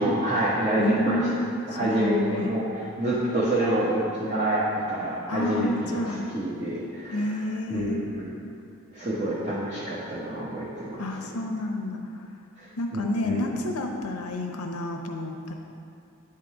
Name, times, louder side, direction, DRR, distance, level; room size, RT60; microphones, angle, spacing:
voice 1, 0.0-1.3 1.7-8.3 8.9-11.3 12.6-13.5, right 1 dB, 35° right, -9 dB, 1.0 m, -28 dB
voice 2, 0.8-2.6 5.3-6.3 7.1-8.0 11.0-12.2 12.8-15.5, left 2 dB, 80° left, 3 dB, 0.8 m, -29 dB
9.0 x 3.8 x 4.8 m, 2.5 s
head